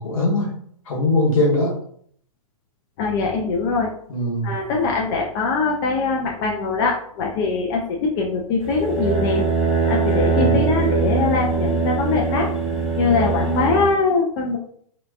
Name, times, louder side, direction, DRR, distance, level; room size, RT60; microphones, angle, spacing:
voice 1, 0.0-1.8 4.1-4.6 10.3-10.7, left 1 dB, 70° left, -1 dB, 1.1 m, -22 dB
voice 2, 3.0-3.9 4.4-9.4 9.9-12.5 13.0-14.6, left 4 dB, 40° left, -1 dB, 0.4 m, -22 dB
sound 1, 8.6-13.9, right 4 dB, ahead, 0.7 m, -22 dB
2.8 x 2.3 x 2.4 m, 0.63 s
hypercardioid pair, 120°, 19 cm